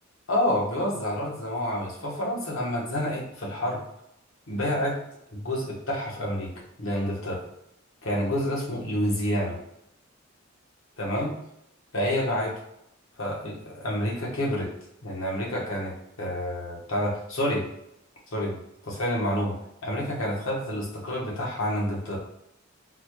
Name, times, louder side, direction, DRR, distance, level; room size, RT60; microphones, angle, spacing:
voice 1, 0.3-3.8 4.5-5.0 5.3-6.5 6.8-7.4 8.0-9.6 11.0-11.3 11.9-12.5 13.2-14.7 15.0-17.6 18.3-19.6 19.8-22.2, equal, 75° left, -3 dB, 1.1 m, -28 dB
4.0 x 2.2 x 3.0 m, 0.79 s
head